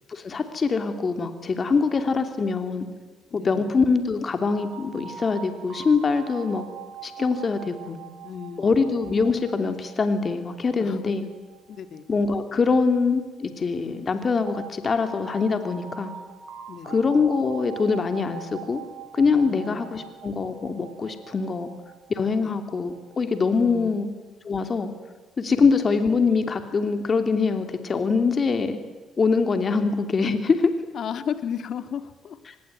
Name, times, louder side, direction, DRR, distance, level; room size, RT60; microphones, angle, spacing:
voice 1, 0.1-2.9 3.3-6.6 7.0-8.0 8.6-11.2 12.1-16.1 16.9-18.8 19.1-21.7 22.1-24.1 24.4-24.9 25.4-28.8 29.2-30.7 32.5-32.6, left 4 dB, 40° left, 7 dB, 2.9 m, -23 dB
voice 2, 3.3-3.6 8.2-8.7 10.8-11.3 11.7-12.0 16.7-17.0 19.5-19.8 22.4-22.5 23.6-24.0 30.9-32.6, left 8 dB, 60° left, 11 dB, 2.1 m, -34 dB
sound 1, 4.4-13.2 14.5-23.6, right 8 dB, 90° right, 4.6 m, -43 dB
24.5 x 21.0 x 9.5 m, 1.3 s
cardioid pair, 85°, 0 cm